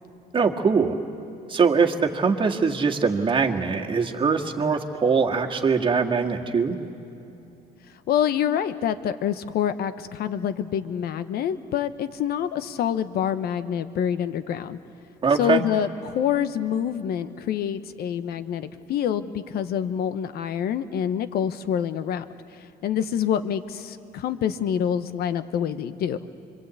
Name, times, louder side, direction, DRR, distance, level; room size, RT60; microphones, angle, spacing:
voice 1, 0.3-1.0 1.5-6.8 15.2-15.6, right 5 dB, 30° right, 1 dB, 1.9 m, -22 dB
voice 2, 8.1-14.8 15.4-22.2 22.8-26.2, left 9 dB, 65° left, 12 dB, 1.0 m, -26 dB
26.0 x 24.0 x 8.4 m, 2.8 s
cardioid pair, 110°, 17 cm